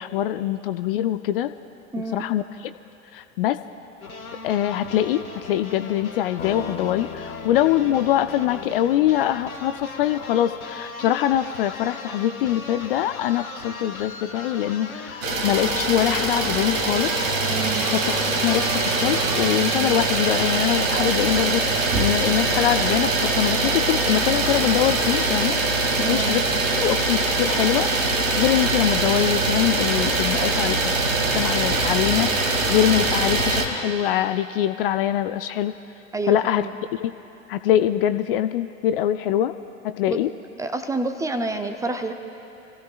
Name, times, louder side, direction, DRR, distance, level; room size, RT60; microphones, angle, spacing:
voice 1, 0.0-1.5 2.1-2.7 3.1-3.6 4.4-17.1 17.9-18.0 18.4-25.6 26.1-26.4 26.8-27.9 28.4-30.9 31.3-35.8 36.3-36.7 36.9-37.1 37.5-39.5 39.8-40.3, left 12 dB, 45° left, 11 dB, 0.4 m, -23 dB
voice 2, 1.9-2.2 17.5-17.9 25.9-26.3 36.1-36.7 40.1-40.2 40.6-42.1, right 3 dB, 10° right, 7 dB, 0.5 m, -28 dB
sound 1, 4.0-19.6, left 4 dB, 85° left, 1.0 m, -38 dB
sound 2, 6.4-10.7, left 4 dB, 25° left, 1.0 m, -39 dB
Idling, 15.2-33.7, right 3 dB, 70° right, 1.6 m, -23 dB
27.5 x 15.5 x 2.4 m, 2.8 s
figure-of-eight pair, 85°, 41 cm